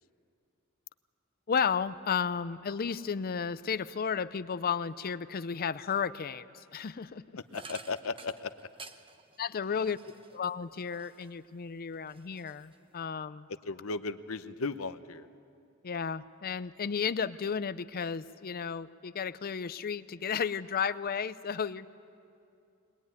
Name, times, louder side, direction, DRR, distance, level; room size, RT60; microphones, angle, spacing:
voice 1, 1.5-7.2 9.4-10.0 10.3-13.5 15.8-21.9, left 6 dB, 45° left, 15 dB, 0.5 m, -33 dB
voice 2, 7.5-8.5 9.7-9.8 13.6-15.3, left 4 dB, 70° left, 11 dB, 0.8 m, -36 dB
sound 1, 7.5-11.5 11.9-13.1, right 4 dB, 25° right, 0.9 m, -51 dB
22.0 x 20.5 x 9.5 m, 2.5 s
head